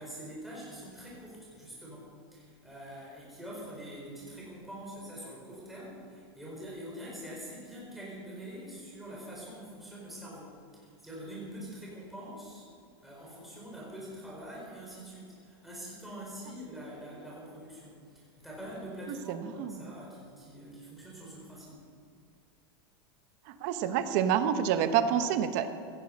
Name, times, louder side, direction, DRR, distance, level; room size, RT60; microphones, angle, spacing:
voice 1, 0.0-12.6 13.0-21.8, equal, ahead, -6 dB, 4.8 m, -45 dB
voice 2, 19.3-19.8 23.6-25.7, right 9 dB, 40° right, 9 dB, 1.1 m, -28 dB
17.0 x 14.0 x 5.4 m, 2.4 s
supercardioid pair, 170°, 14 cm